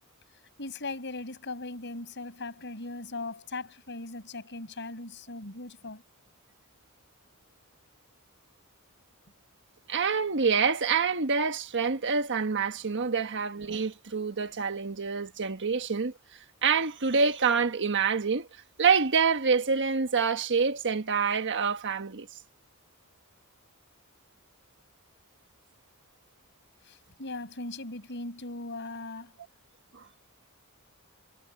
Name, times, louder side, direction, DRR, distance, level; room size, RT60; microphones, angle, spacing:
voice 1, 0.6-6.0 26.8-29.3, left 2 dB, 55° left, 6.6 m, -39 dB
voice 2, 9.9-16.1 16.6-18.5 18.8-22.3 29.9-30.0, right 5 dB, 55° right, 1.4 m, -26 dB
head